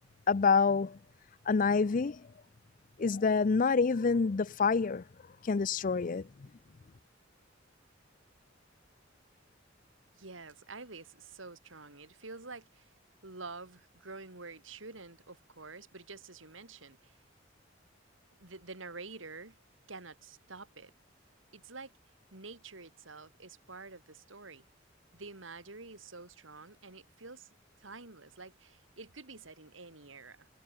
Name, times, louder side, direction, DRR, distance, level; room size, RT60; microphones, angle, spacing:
voice 1, 0.3-1.0 1.5-2.3 3.0-5.0 5.4-6.5, left 5 dB, 45° left, 0.5 m, -27 dB
voice 2, 10.1-12.9 13.2-17.2 18.4-19.6 19.9-20.9 21.5-21.9 22.3-24.6 25.1-27.5 27.8-30.5, right 3 dB, 85° right, 3.4 m, -48 dB
head